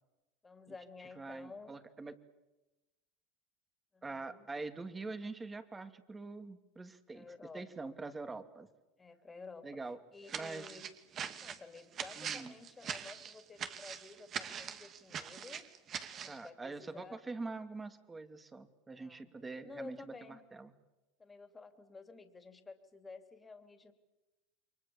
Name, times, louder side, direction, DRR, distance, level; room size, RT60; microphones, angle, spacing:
voice 1, 0.4-1.8 3.9-4.5 7.1-8.0 9.0-10.9 11.4-15.6 16.1-17.2 19.0-19.3 19.6-20.4 21.2-23.9, left 4 dB, 15° left, 8 dB, 3.3 m, -52 dB
voice 2, 1.2-2.2 4.0-8.7 9.6-10.0 10.3-10.7 12.2-12.5 16.3-20.1 20.5-20.7, right 3 dB, 15° right, 10 dB, 2.6 m, -44 dB
sound 1, 10.3-16.4, right 8 dB, 40° right, 2.5 m, -42 dB
29.5 x 24.0 x 7.3 m, 1.0 s
supercardioid pair, 105°, 0 cm